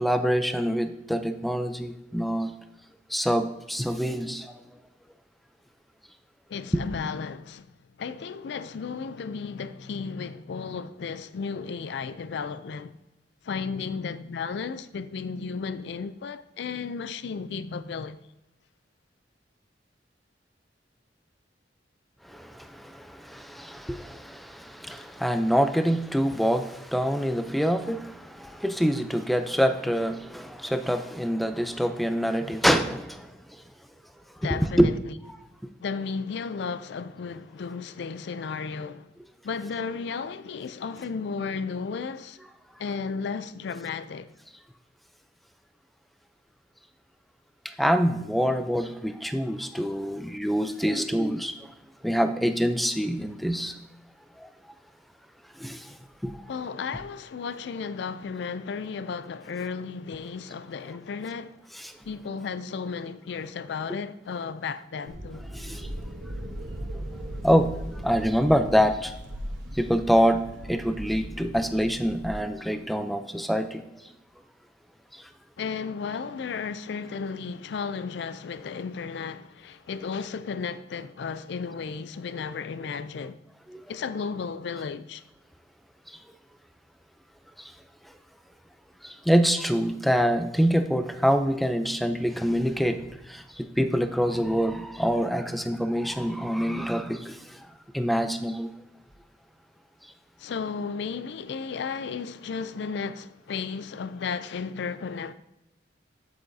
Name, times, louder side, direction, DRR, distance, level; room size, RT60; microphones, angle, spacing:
voice 1, 0.0-2.5 3.1-4.6 6.7-6.8 22.2-33.3 34.4-34.9 47.6-51.6 52.0-53.8 54.4-54.5 55.6-56.0 56.2-56.3 61.8-61.9 65.5-65.9 66.9-67.0 67.4-67.7 68.0-69.1 69.7-74.2 75.1-75.2 83.7-83.8 86.1-86.2 87.6-87.7 89.0-98.7, equal, ahead, 0.4 m, -26 dB
voice 2, 6.5-7.7 8.0-12.9 13.4-18.2 34.4-34.9 35.8-39.1 39.4-42.4 42.8-44.3 56.5-61.6 62.0-65.4 75.6-83.4 83.9-85.2 100.4-105.3, left 5 dB, 65° left, 0.4 m, -34 dB
sound 1, 65.1-72.3, right 1 dB, 70° right, 1.1 m, -38 dB
8.7 x 7.8 x 2.7 m
head